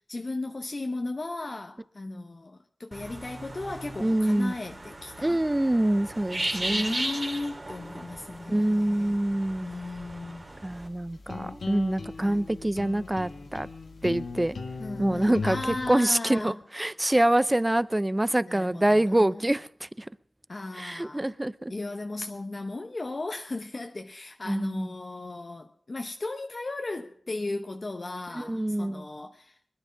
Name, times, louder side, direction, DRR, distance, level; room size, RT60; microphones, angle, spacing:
voice 1, 0.1-5.4 6.3-9.2 9.6-10.6 12.2-12.4 14.8-16.6 18.5-19.5 20.5-21.3 21.7-29.6, left 2 dB, 50° left, 0.9 m, -36 dB
sound 1, 2.9-10.9, right 1 dB, 40° right, 2.9 m, -36 dB
voice 2, 4.0-4.5 5.2-7.0 8.5-9.7 10.6-13.7 14.0-14.6 15.0-15.6 15.9-20.1 20.8-21.7 24.5-24.9 28.4-29.1, right 1 dB, 20° right, 0.6 m, -25 dB
sound 2, 10.7-15.9, left 4 dB, 85° left, 1.6 m, -38 dB
21.0 x 10.0 x 5.7 m
cardioid pair, 40°, 0 cm